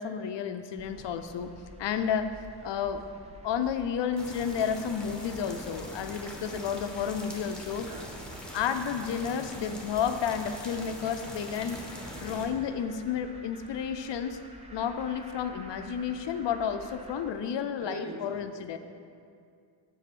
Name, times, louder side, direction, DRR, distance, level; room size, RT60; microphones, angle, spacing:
voice 1, 0.0-1.5 1.8-2.3 2.6-3.0 3.4-7.9 8.5-11.8 12.2-14.4 14.7-18.8, left 7 dB, 65° left, 9 dB, 0.6 m, -31 dB
sound 1, 0.8-17.3, right 1 dB, 15° right, 0.9 m, -51 dB
sound 2, 4.2-12.5, left 1 dB, ahead, 1.3 m, -43 dB
voice 2, 7.8-8.5 17.8-18.8, right 2 dB, 35° right, 1 dB, 1.3 m, -43 dB
7.8 x 4.5 x 5.9 m, 2.3 s
cardioid pair, 65°, 46 cm